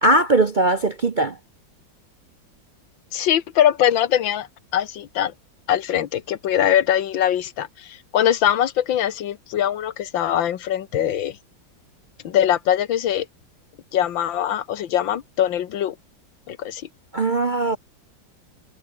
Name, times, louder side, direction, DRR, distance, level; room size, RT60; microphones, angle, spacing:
voice 1, 0.0-1.3 17.1-17.8, right 2 dB, 45° right, 0.6 m, -19 dB
voice 2, 3.1-4.5 4.7-5.3 5.7-11.4 12.2-13.3 13.9-16.0 16.5-16.8, left 10 dB, 90° left, 1.9 m, -22 dB
omnidirectional pair, 2.0 m